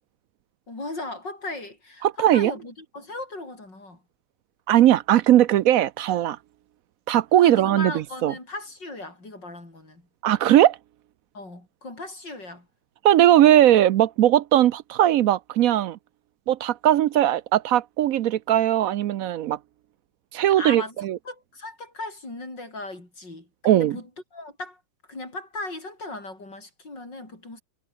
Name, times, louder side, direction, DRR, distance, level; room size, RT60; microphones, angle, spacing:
voice 1, 0.7-4.0 7.4-10.1 11.3-12.7 20.6-21.0 21.2-24.8 25.1-27.6, left 2 dB, 85° left, 8.2 m, -37 dB
voice 2, 2.0-2.5 4.7-6.4 7.1-7.9 8.2-8.3 10.2-10.8 13.0-16.0 16.5-19.6 20.3-21.2 23.6-24.0, right 12 dB, 70° right, 0.9 m, -19 dB
omnidirectional pair, 1.9 m